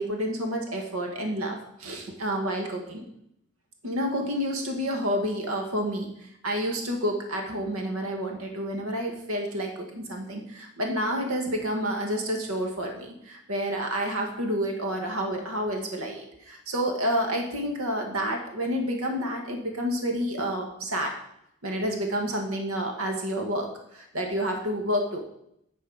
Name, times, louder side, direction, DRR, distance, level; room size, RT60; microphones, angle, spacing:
voice 1, 0.0-3.0 3.8-6.1 6.4-21.1 21.6-25.2, equal, 85° right, 2 dB, 1.5 m, -29 dB
10.5 x 4.3 x 5.4 m, 0.74 s
head